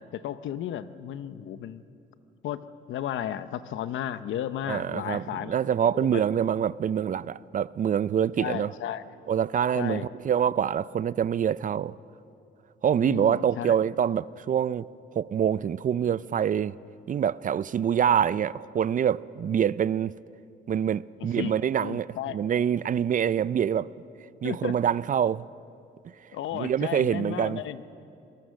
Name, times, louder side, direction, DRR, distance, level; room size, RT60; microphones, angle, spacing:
voice 1, 0.0-1.8 2.4-2.6 2.9-5.6 5.9-6.2 8.4-9.0 9.7-10.1 13.0-13.7 21.2-21.5 21.8-22.4 24.4-24.8 26.3-27.8, left 10 dB, 75° left, 0.8 m, -34 dB
voice 2, 4.7-8.7 9.3-11.9 12.8-14.9 15.1-16.7 17.1-20.1 20.7-23.9 24.4-25.5 26.5-27.6, right 8 dB, 40° right, 0.4 m, -25 dB
25.5 x 19.0 x 6.4 m
cardioid pair, 90°, 20 cm